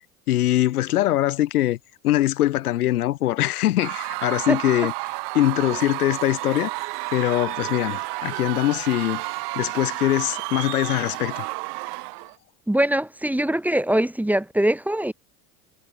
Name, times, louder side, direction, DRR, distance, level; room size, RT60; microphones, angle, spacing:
voice 1, 0.3-1.8 2.0-4.9 5.3-6.7 7.1-9.2 9.6-11.5, left 14 dB, 85° left, 6.0 m, -22 dB
Screaming / Cheering / Crowd, 3.8-12.3, right 28 dB, 65° right, 3.4 m, -31 dB
voice 2, 12.7-15.1, right 1 dB, 5° right, 1.3 m, -22 dB
hypercardioid pair, 85°, 43 cm